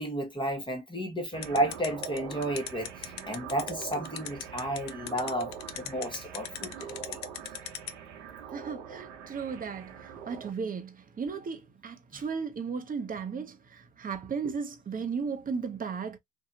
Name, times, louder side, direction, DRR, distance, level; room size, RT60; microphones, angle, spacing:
voice 1, 0.0-7.2 12.1-12.2, right 1 dB, 15° left, 1.0 m, -32 dB
sound 1, 1.3-10.5, right 7 dB, 90° right, 0.8 m, -43 dB
sound 2, 1.4-7.9, left 11 dB, 50° left, 0.6 m, -37 dB
voice 2, 8.5-16.2, right 5 dB, 25° right, 0.7 m, -35 dB
2.8 x 2.2 x 2.6 m
supercardioid pair, 80°, 36 cm